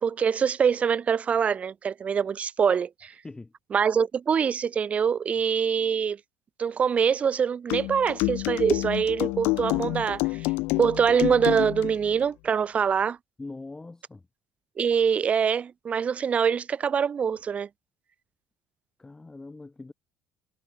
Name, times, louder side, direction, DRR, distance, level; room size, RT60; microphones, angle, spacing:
voice 1, 0.0-3.1 3.7-6.2 6.6-10.5 10.8-13.2 14.8-17.7, right 7 dB, 35° right, 0.8 m, -24 dB
voice 2, 3.1-3.5 13.4-14.3 19.0-19.9, left 3 dB, 15° left, 4.5 m, -42 dB
sound 1, 7.7-12.0, left 24 dB, 80° left, 2.1 m, -28 dB
supercardioid pair, 100°, 4 cm